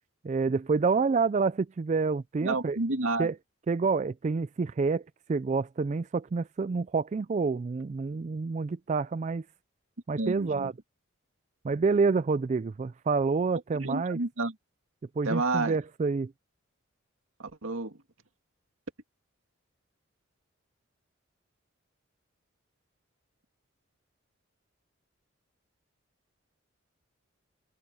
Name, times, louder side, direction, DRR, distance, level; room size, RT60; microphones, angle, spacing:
voice 1, 0.2-2.8 3.2-3.3 3.7-5.0 5.3-9.4 10.1-10.7 11.6-14.2 15.2-16.3, right 4 dB, 35° right, 0.3 m, -28 dB
voice 2, 2.4-3.3 10.2-10.7 13.8-14.5 15.2-15.8 17.4-18.0, right 3 dB, 80° right, 2.2 m, -30 dB
head